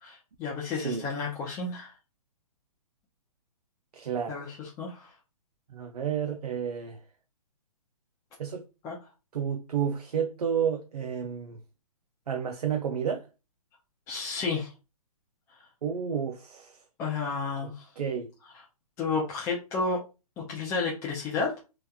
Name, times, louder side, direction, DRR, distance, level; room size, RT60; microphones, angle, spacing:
voice 1, 0.0-1.9 4.3-5.1 8.8-9.0 14.1-14.7 17.0-17.9 18.5-18.6 19.0-20.0 20.5-21.6, left 4 dB, 15° left, 0.4 m, -31 dB
voice 2, 0.7-1.1 3.9-4.4 5.7-7.0 8.4-8.6 9.3-11.6 12.3-13.3 15.8-16.8 17.6-18.3, right 7 dB, 85° right, 0.4 m, -31 dB
2.8 x 2.2 x 2.2 m
hypercardioid pair, 135°, 20 cm